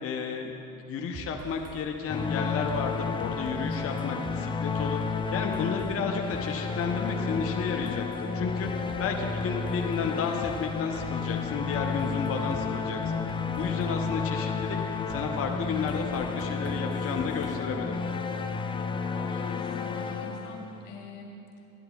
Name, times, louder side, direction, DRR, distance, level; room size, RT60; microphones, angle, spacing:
voice 1, 0.0-0.6 0.9-13.0 13.5-14.8 15.1-18.0, left 5 dB, 35° left, 1 dB, 0.7 m, -32 dB
sound 1, 1.1-1.8 2.2-2.3 2.7-4.4 4.7-5.9 6.3-6.4 6.8-10.1 10.4-10.6 11.0-12.6 13.0-14.2 14.6-14.7 15.1-17.6, right 3 dB, 40° right, 1.0 m, -45 dB
sound 2, 2.1-21.0, left 5 dB, 15° left, 0.3 m, -31 dB
voice 2, 19.0-21.7, left 3 dB, 80° left, -1 dB, 1.7 m, -45 dB
12.5 x 10.5 x 2.3 m, 2.9 s
supercardioid pair, 85°, 39 cm